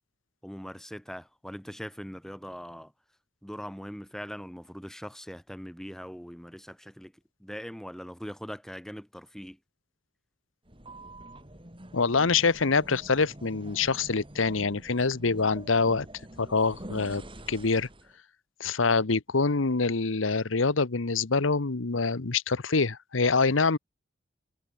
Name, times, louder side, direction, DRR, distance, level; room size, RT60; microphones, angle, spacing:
voice 1, 0.4-2.9 3.4-7.1 7.4-9.6, equal, ahead, 2.1 m, -41 dB
sound 1, 10.7-18.2, right 1 dB, 25° right, 4.5 m, -46 dB
voice 2, 11.9-16.0 16.4-17.2 17.5-17.9 18.6-23.8, left 4 dB, 85° left, 1.1 m, -25 dB
head